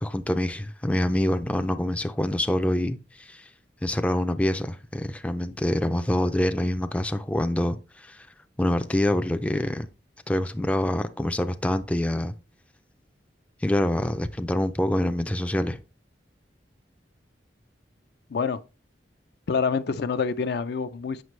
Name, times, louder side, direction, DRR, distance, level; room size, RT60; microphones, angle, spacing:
voice 1, 0.0-3.5 3.8-8.3 8.6-9.9 10.3-12.3 13.6-15.8, left 1 dB, 5° left, 0.4 m, -26 dB
voice 2, 19.5-21.2, left 5 dB, 65° left, 0.5 m, -26 dB
7.6 x 5.9 x 3.1 m
head